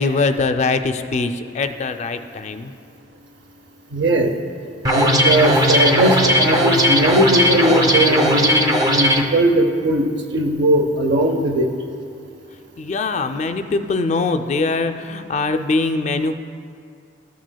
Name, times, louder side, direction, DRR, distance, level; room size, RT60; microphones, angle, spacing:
voice 1, 0.0-2.7 12.8-16.3, left 3 dB, 40° left, 8 dB, 0.3 m, -22 dB
voice 2, 3.9-4.3 4.9-10.0 10.3-11.7, right 1 dB, 65° right, 6 dB, 0.7 m, -18 dB
sound 1, 4.9-9.2, equal, 20° right, 0.5 m, -17 dB
13.5 x 6.2 x 2.2 m, 2.4 s
head